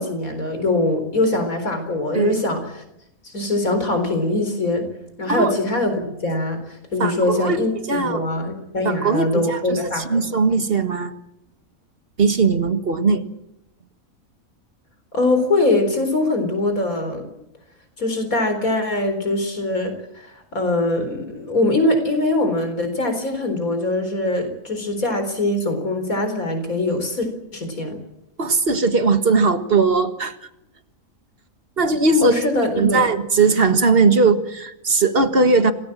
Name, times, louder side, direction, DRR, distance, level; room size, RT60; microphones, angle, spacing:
voice 1, 0.0-2.6 3.2-4.9 5.2-10.2 15.1-17.3 18.0-28.0 32.2-33.0, left 2 dB, 80° left, 7 dB, 4.6 m, -22 dB
voice 2, 7.0-7.6 7.9-8.3 8.8-11.1 12.2-13.2 28.4-30.4 31.8-32.4 32.8-35.7, right 4 dB, 45° right, 8 dB, 1.8 m, -19 dB
27.0 x 18.5 x 7.6 m, 0.84 s
omnidirectional pair, 1.5 m